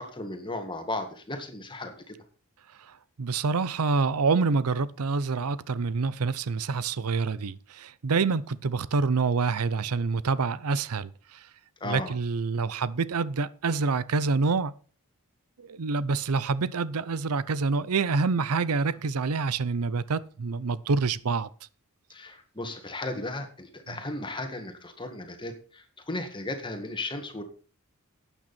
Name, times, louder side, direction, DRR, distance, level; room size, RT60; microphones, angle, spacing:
voice 1, 0.0-2.2 11.8-12.1 22.1-27.4, left 2 dB, 20° left, 1.8 m, -35 dB
voice 2, 2.8-11.5 11.8-14.7 15.6-21.5 23.9-24.0, right 4 dB, 80° right, 0.6 m, -27 dB
12.0 x 9.1 x 4.3 m
head